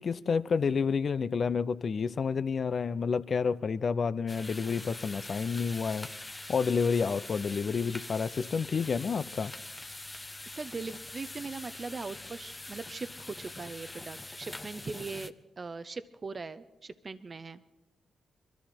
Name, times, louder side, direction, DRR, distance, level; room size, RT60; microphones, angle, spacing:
voice 1, 0.0-6.1 6.5-9.5, left 5 dB, 55° left, 0.5 m, -29 dB
sound 1, 4.3-15.3, left 2 dB, 25° left, 0.8 m, -44 dB
voice 2, 10.5-17.6, right 4 dB, 45° right, 0.7 m, -40 dB
23.0 x 13.5 x 4.4 m
hypercardioid pair, 40°, 0 cm